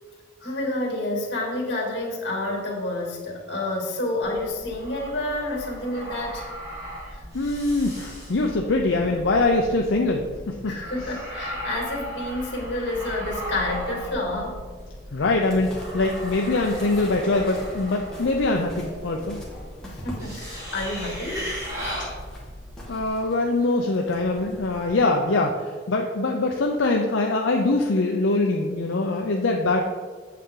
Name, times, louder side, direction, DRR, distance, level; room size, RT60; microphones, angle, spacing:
voice 1, 0.4-6.5 7.1-7.2 10.6-14.6 19.8-21.5, left 1 dB, 60° left, -1 dB, 2.7 m, -29 dB
sound 1, 4.2-23.1, equal, 15° right, 2.3 m, -37 dB
voice 2, 7.3-10.7 15.1-19.4 22.9-29.9, left 2 dB, 80° left, 1 dB, 0.6 m, -23 dB
sound 2, 15.4-25.0, equal, 5° left, 1.8 m, -44 dB
8.3 x 7.6 x 3.8 m, 1.6 s
head